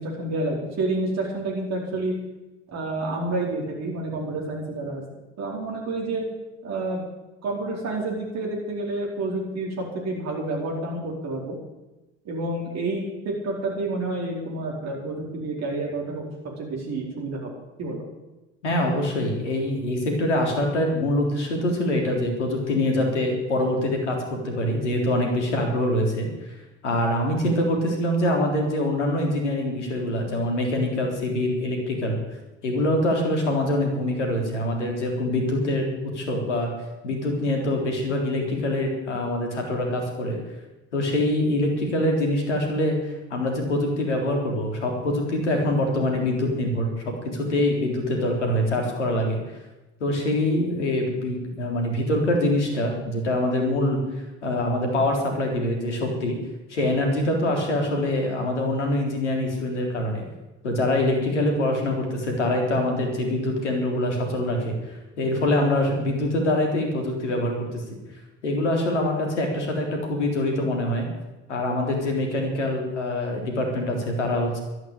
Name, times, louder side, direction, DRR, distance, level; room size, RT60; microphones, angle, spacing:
voice 1, 0.0-2.1 2.7-5.0 5.4-6.2 6.6-7.0 7.4-11.5 12.2-16.2 16.6-17.5 17.8-18.0, right 2 dB, 50° right, -2 dB, 4.9 m, -29 dB
voice 2, 18.6-26.3 26.8-32.2 32.6-36.7 37.0-40.4 40.9-49.4 50.0-54.0 54.4-56.4 56.7-60.2 60.6-68.0 68.4-71.1 71.5-74.6, left 1 dB, 80° left, 2 dB, 3.8 m, -24 dB
13.0 x 11.0 x 9.0 m, 1.0 s
figure-of-eight pair, 60°, 35 cm